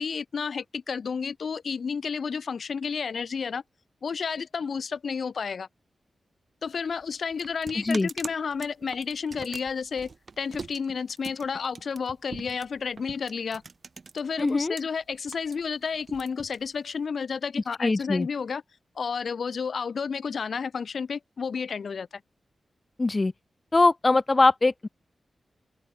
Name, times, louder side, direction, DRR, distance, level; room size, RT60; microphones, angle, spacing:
voice 1, 0.0-3.6 4.0-5.7 6.6-10.1 10.4-13.6 14.1-18.6 19.0-22.2, left 5 dB, 65° left, 5.7 m, -31 dB
sound 1, 6.6-14.8 15.1-17.1, right 4 dB, 50° right, 5.3 m, -43 dB
voice 2, 7.8-8.1 14.4-14.8 17.8-18.3 23.0-23.3 23.7-24.9, left 3 dB, 30° left, 0.6 m, -22 dB
open air
wide cardioid pair, 85°, 0 cm